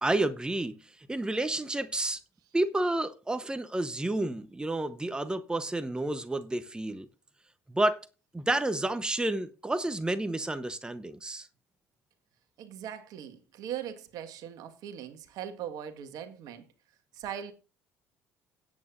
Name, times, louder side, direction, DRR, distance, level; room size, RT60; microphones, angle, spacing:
voice 1, 0.0-2.2 2.5-7.1 7.7-8.1 8.3-11.5, right 2 dB, 10° right, 0.9 m, -30 dB
voice 2, 12.6-16.6 17.1-17.5, right 9 dB, 60° right, 1.6 m, -40 dB
17.5 x 8.6 x 2.5 m
hypercardioid pair, 55°, 7 cm